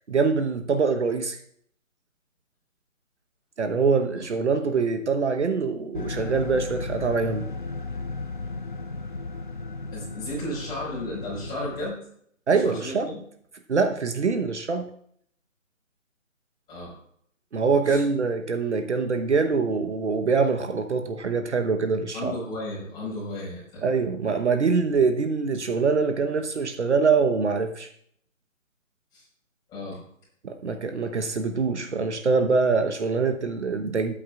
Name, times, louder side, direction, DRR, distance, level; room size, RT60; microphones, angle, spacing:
voice 1, 0.1-1.4 3.6-7.5 12.5-13.1 13.7-14.9 17.5-22.3 23.8-27.9 30.4-34.1, right 4 dB, 55° right, 7 dB, 1.1 m, -24 dB
sound 1, 5.9-11.9, left 3 dB, 40° left, 0.4 m, -35 dB
voice 2, 9.9-12.0 12.6-13.2 16.7-16.9 17.8-18.0 22.1-23.8 29.1-29.2 29.7-30.0, left 1 dB, 10° left, -6 dB, 4.9 m, -34 dB
20.0 x 8.7 x 2.4 m, 0.66 s
figure-of-eight pair, 150°, 40 cm